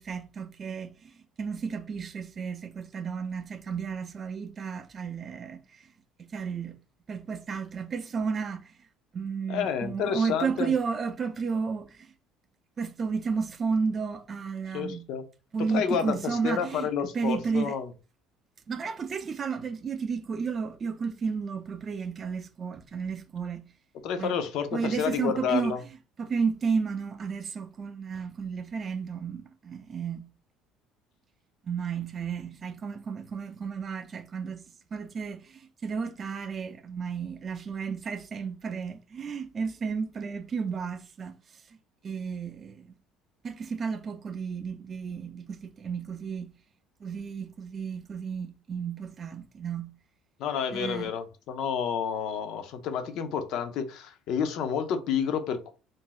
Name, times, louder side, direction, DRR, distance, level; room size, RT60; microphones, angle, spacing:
voice 1, 0.0-5.9 6.2-6.8 7.1-8.7 9.1-12.1 12.8-15.1 15.5-17.8 18.7-23.6 24.2-24.4 24.7-25.8 26.2-30.3 31.6-34.6 34.9-41.6 42.0-42.9 43.4-46.5 47.0-49.9 50.7-51.1, right 5 dB, 35° right, 0.4 m, -32 dB
voice 2, 9.5-10.7 14.7-15.2 15.7-17.9 24.0-25.8 50.4-55.7, left 7 dB, 65° left, 0.5 m, -30 dB
2.5 x 2.0 x 3.8 m
supercardioid pair, 90°, 0 cm